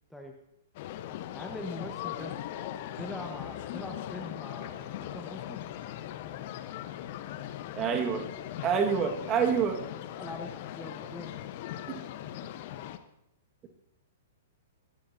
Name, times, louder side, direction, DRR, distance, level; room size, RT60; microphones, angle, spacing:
sound 1, 0.7-13.0, left 12 dB, 45° left, 1.0 m, -39 dB
voice 1, 1.3-2.3 3.0-5.6 10.2-11.4, left 2 dB, ahead, 1 dB, 1.3 m, -42 dB
voice 2, 7.8-8.2 8.6-9.9 11.9-12.0, right 7 dB, 25° right, 4 dB, 1.8 m, -27 dB
21.5 x 14.0 x 2.8 m, 0.80 s
figure-of-eight pair, 110°, 0 cm